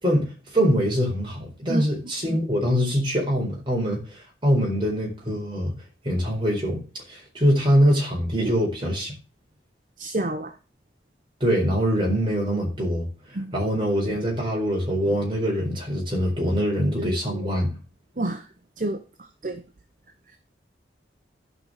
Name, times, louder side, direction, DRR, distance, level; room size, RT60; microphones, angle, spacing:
voice 1, 0.0-5.7 6.0-6.8 7.1-9.1 11.4-13.0 13.5-17.7, equal, 25° right, -1 dB, 4.4 m, -23 dB
voice 2, 10.0-10.5 13.3-13.5 17.0-17.6 18.2-18.5 18.8-19.0 19.4-19.6, right 1 dB, 45° right, 7 dB, 0.8 m, -29 dB
12.0 x 5.5 x 6.5 m, 0.34 s
head